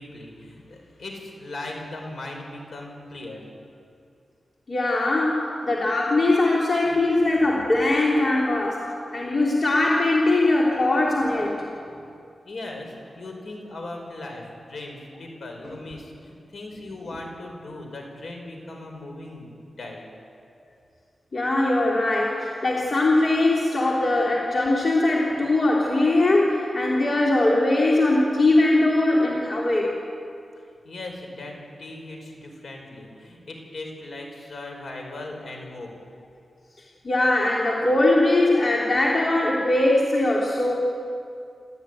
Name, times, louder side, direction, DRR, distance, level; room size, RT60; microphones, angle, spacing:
voice 1, 0.0-3.4 11.4-12.1 12.4-20.1 30.8-35.9, left 2 dB, 70° left, 2 dB, 5.2 m, -38 dB
voice 2, 4.7-11.6 15.6-15.7 21.3-29.9 37.0-40.7, left 2 dB, 40° left, -4 dB, 3.2 m, -21 dB
28.0 x 14.0 x 9.4 m, 2.4 s
wide cardioid pair, 125°, 0 cm